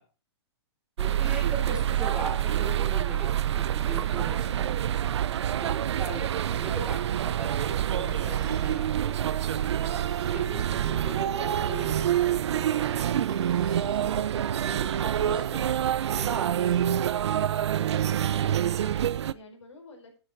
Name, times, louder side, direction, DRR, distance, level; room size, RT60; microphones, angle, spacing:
voice 1, 1.0-4.8 5.5-9.8 10.3-15.6 16.1-16.7, right 2 dB, 5° right, 0 dB, 2.9 m, -41 dB
sound 1, 1.0-19.3, right 10 dB, 70° right, 0.6 m, -27 dB
sound 2, 6.3-6.9 7.9-8.9 9.8-10.5 11.8-12.5 13.3-14.0 14.9-15.6 16.5-17.0 17.8-18.3, right 7 dB, 45° right, 2.3 m, -46 dB
voice 2, 18.3-20.2, left 2 dB, 85° left, 2 dB, 4.8 m, -52 dB
10.0 x 8.8 x 4.5 m, 0.37 s
hypercardioid pair, 150°, 15 cm